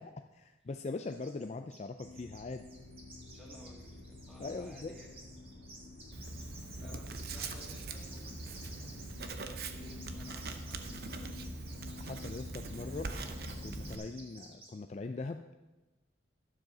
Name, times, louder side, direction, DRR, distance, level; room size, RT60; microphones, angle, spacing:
voice 1, 0.0-2.7 4.4-4.9 6.8-7.0 12.0-13.1 13.6-15.4, left 3 dB, 35° left, 7 dB, 0.4 m, -41 dB
sound 1, 1.0-1.5 1.7-14.7, right 2 dB, 30° right, 2.2 m, -55 dB
sound 2, 2.0-14.0, left 2 dB, 65° left, 1.6 m, -49 dB
voice 2, 3.3-5.2 6.8-9.2 9.5-11.8, equal, ahead, -4 dB, 2.2 m, -57 dB
Writing, 6.1-14.0, right 3 dB, 55° right, 0.8 m, -43 dB
12.0 x 7.6 x 6.1 m, 1.1 s
head